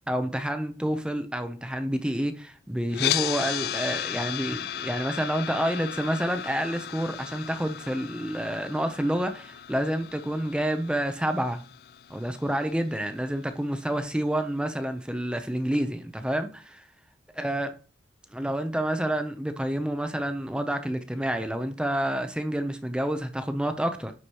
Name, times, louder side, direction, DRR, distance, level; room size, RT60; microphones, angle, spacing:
voice 1, 0.1-11.6 12.1-16.8 17.4-17.7 18.3-24.1, right 1 dB, 5° right, 0.5 m, -29 dB
sound 1, 2.9-13.0, left 11 dB, 60° left, 0.3 m, -35 dB
9.8 x 4.8 x 2.9 m
head